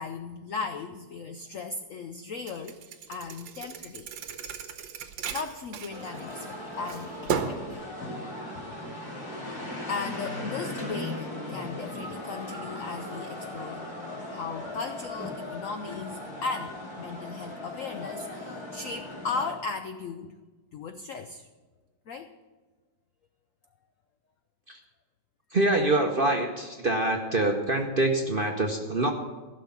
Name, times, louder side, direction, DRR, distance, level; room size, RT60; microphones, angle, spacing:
voice 1, 0.0-2.8 3.1-4.1 5.3-7.8 8.5-8.8 9.9-13.9 14.3-20.3 20.7-21.5 22.1-22.3, left 4 dB, 75° left, 8 dB, 0.7 m, -37 dB
Thump thud, 2.5-6.5 6.9-7.7, right 7 dB, 75° right, 1.5 m, -34 dB
sound 1, 5.9-19.5, left 1 dB, 50° left, 3.0 m, -38 dB
voice 2, 25.5-29.1, right 2 dB, 45° right, 2 dB, 0.7 m, -25 dB
15.5 x 6.4 x 7.2 m, 1.3 s
omnidirectional pair, 2.1 m